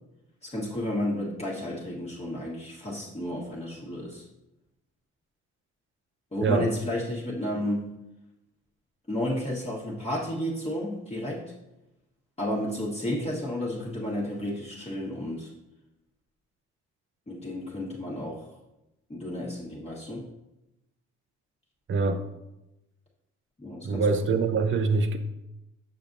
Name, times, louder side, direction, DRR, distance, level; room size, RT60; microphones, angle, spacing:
voice 1, 0.4-4.2 6.3-7.9 9.1-11.5 12.4-15.5 17.3-18.5 19.1-20.3 23.6-24.3, left 1 dB, 20° left, 1.3 m, -32 dB
voice 2, 21.9-22.3 23.8-25.2, right 4 dB, 40° right, 0.7 m, -24 dB
7.0 x 5.9 x 2.6 m
cardioid pair, 90°, 30 cm